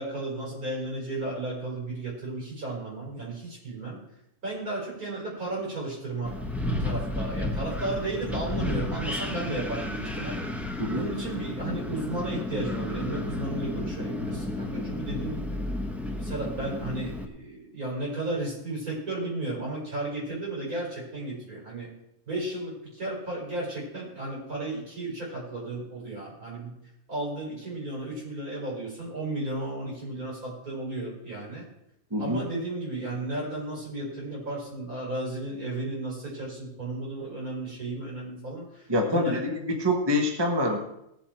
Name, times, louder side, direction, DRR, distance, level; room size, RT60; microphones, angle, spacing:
voice 1, 0.0-4.0 4.4-6.4 6.6-10.4 10.9-15.6 16.2-21.9 22.3-26.8 27.1-31.7 32.2-39.4, right 2 dB, 85° right, -5 dB, 5.7 m, -34 dB
Wind, 6.2-17.2, left 1 dB, ahead, 0.9 m, -32 dB
voice 2, 32.1-32.4 38.9-40.8, left 1 dB, 20° right, 3 dB, 1.3 m, -25 dB
19.0 x 7.7 x 4.5 m, 0.82 s
omnidirectional pair, 1.5 m